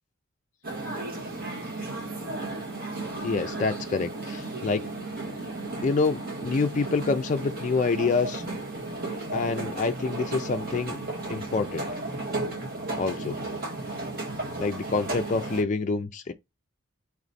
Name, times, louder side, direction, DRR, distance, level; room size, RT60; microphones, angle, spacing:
sound 1, 0.6-15.6, right 2 dB, 45° right, 1.4 m, -34 dB
voice 1, 3.2-4.8 5.8-8.4 9.3-11.0 11.3-11.9 13.0-13.4 14.6-16.3, left 4 dB, 35° left, 0.3 m, -27 dB
4.1 x 3.0 x 4.0 m
head